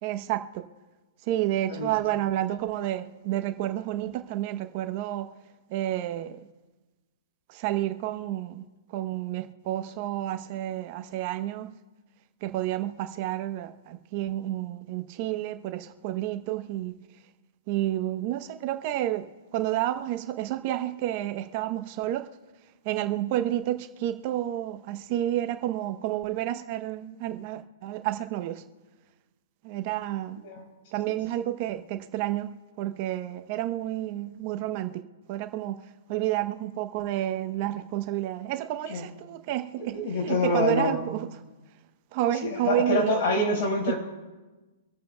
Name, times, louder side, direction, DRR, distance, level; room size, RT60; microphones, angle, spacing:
voice 1, 0.0-0.6 1.3-5.3 5.7-6.4 7.5-8.6 8.9-11.7 12.4-16.9 17.7-22.3 22.8-28.6 29.6-30.4 30.9-35.0 35.3-35.8 36.1-41.3 42.1-43.1 43.9-44.0, right 13 dB, 45° right, 8 dB, 0.8 m, -30 dB
voice 2, 39.9-41.0 42.4-43.9, left 2 dB, 55° left, 1 dB, 4.6 m, -26 dB
25.5 x 8.6 x 2.2 m, 1.2 s
hypercardioid pair, 140°, 0 cm